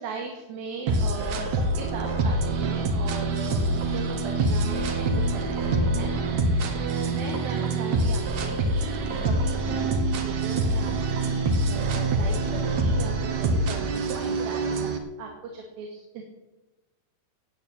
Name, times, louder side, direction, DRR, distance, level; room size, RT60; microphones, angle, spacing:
voice 1, 0.0-14.8 15.2-16.2, right 4 dB, 90° right, 1 dB, 3.8 m, -38 dB
sound 1, 0.9-15.0, right 2 dB, 60° right, 2.4 m, -25 dB
18.0 x 8.1 x 8.9 m, 1.1 s
omnidirectional pair, 4.1 m